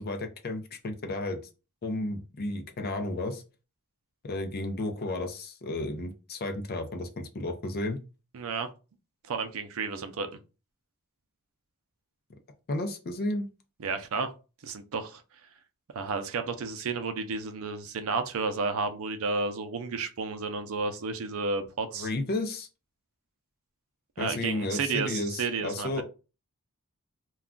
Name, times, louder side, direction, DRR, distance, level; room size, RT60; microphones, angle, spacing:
voice 1, 0.0-1.4 1.8-3.4 4.2-8.0 12.7-13.5 22.0-22.7 24.2-26.0, left 2 dB, 45° left, 0.5 m, -32 dB
voice 2, 8.3-8.7 9.2-10.4 13.8-14.3 14.6-15.2 15.9-22.1 24.2-26.0, right 4 dB, 70° right, 0.5 m, -32 dB
2.3 x 2.2 x 3.6 m
head